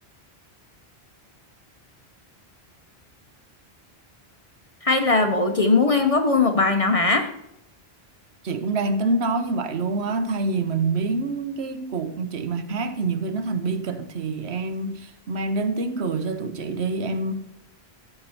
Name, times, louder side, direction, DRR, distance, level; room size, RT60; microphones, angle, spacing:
voice 1, 4.8-7.3, left 3 dB, 35° left, 0.8 m, -19 dB
voice 2, 8.4-17.3, right 3 dB, 80° right, 1.1 m, -26 dB
13.5 x 6.0 x 4.3 m
omnidirectional pair, 1.1 m